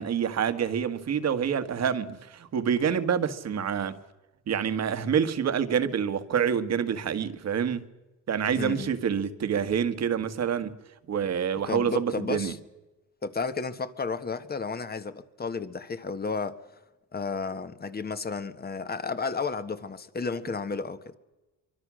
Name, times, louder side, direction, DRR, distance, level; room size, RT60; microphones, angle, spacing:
voice 1, 0.0-4.0 4.5-7.8 8.3-10.8 11.1-12.5, right 7 dB, 60° right, 1.7 m, -27 dB
voice 2, 8.5-8.9 11.6-12.6 13.2-16.6 17.1-21.2, left 4 dB, 30° left, 1.6 m, -32 dB
24.5 x 24.0 x 6.3 m
cardioid pair, 90°, 30 cm